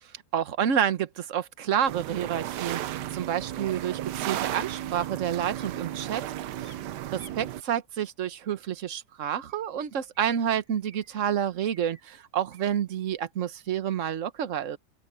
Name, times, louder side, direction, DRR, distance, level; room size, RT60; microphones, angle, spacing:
voice 1, 0.3-6.2 6.6-6.7 7.1-14.8, right 9 dB, 50° right, 1.3 m, -29 dB
sound 1, 1.9-7.6, right 12 dB, 75° right, 1.3 m, -34 dB
sound 2, 5.5-5.7 6.1-7.3 8.6-8.7 9.5-9.7 10.1-11.2 11.6-12.1 12.5-12.8, equal, 60° left, 7.5 m, -56 dB
omnidirectional pair, 1.8 m